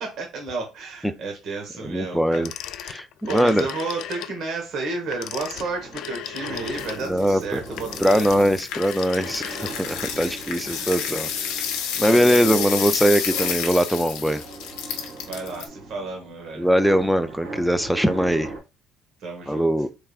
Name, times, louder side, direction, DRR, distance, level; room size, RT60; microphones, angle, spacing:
voice 1, 0.0-2.5 3.2-8.3 10.6-10.9 11.9-12.9 15.3-16.7 19.2-19.7, right 3 dB, 60° right, 1.3 m, -32 dB
voice 2, 1.8-2.5 2.8-3.7 7.1-7.6 8.0-11.3 12.0-14.4 16.6-18.5 19.5-19.9, equal, 5° right, 0.4 m, -21 dB
Telephone, 2.3-4.4 5.0-10.1, left 11 dB, 70° left, 0.3 m, -36 dB
sound 1, 5.5-18.6, right 2 dB, 85° right, 1.6 m, -39 dB
sound 2, 6.5-15.6, left 8 dB, 90° left, 0.8 m, -30 dB
3.4 x 3.4 x 2.4 m
cardioid pair, 95°, 0 cm